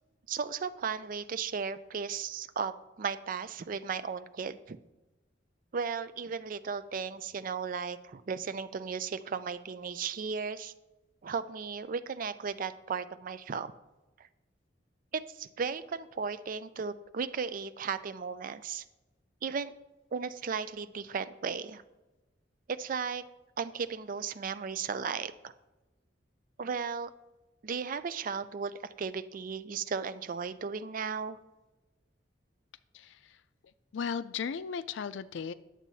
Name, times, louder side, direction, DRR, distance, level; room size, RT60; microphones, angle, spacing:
voice 1, 0.3-4.8 5.7-10.7 11.2-13.7 14.2-14.3 15.1-18.8 19.4-19.7 20.1-21.8 22.7-23.2 23.6-25.5 26.6-27.1 27.6-31.4, right 6 dB, 50° right, 13 dB, 0.4 m, -35 dB
voice 2, 32.9-33.4 33.9-35.5, left 6 dB, 75° left, 14 dB, 0.4 m, -36 dB
10.5 x 7.3 x 2.7 m, 1.1 s
head